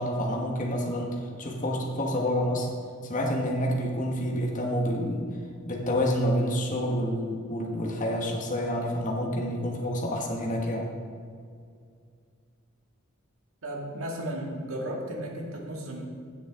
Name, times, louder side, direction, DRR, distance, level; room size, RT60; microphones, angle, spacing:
voice 1, 0.0-2.7 3.0-5.3 5.6-10.9, equal, 40° left, -1 dB, 1.5 m, -28 dB
voice 2, 13.6-16.0, right 1 dB, 75° right, -1 dB, 2.1 m, -34 dB
15.5 x 7.4 x 3.8 m, 2.2 s
head